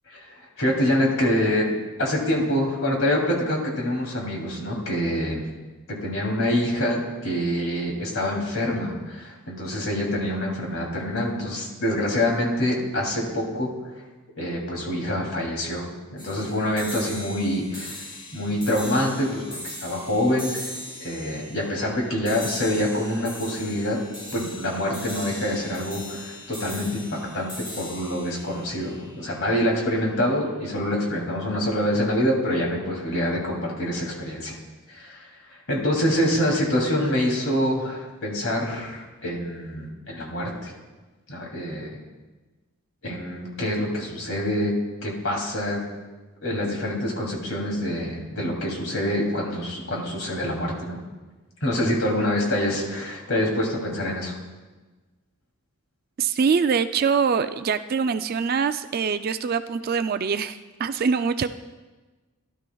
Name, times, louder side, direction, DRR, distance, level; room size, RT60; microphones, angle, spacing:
voice 1, 0.1-1.7 2.0-5.4 6.0-13.7 14.4-15.9 16.1-18.1 18.3-20.7 21.0-24.0 24.3-34.5 34.9-40.7 41.3-41.9 43.0-44.7 45.0-45.8 46.4-51.0 51.6-54.4, left 1 dB, 60° left, -1 dB, 2.9 m, -26 dB
sound 1, 16.2-29.6, left 1 dB, 25° left, 3.4 m, -39 dB
voice 2, 56.2-61.5, right 6 dB, 40° right, 11 dB, 0.3 m, -24 dB
16.5 x 12.0 x 2.3 m, 1.2 s
head